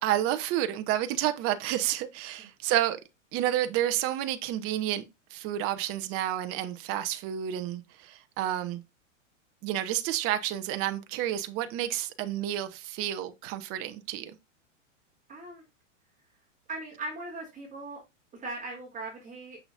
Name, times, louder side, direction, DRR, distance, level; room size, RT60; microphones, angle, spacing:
voice 1, 0.0-3.0 3.3-5.0 5.3-8.8 9.6-14.3, right 12 dB, 35° right, 0.8 m, -30 dB
voice 2, 15.3-15.6 16.7-18.0 18.3-19.6, right 2 dB, 20° right, 3.0 m, -39 dB
6.6 x 5.9 x 2.6 m
hypercardioid pair, 115°, 38 cm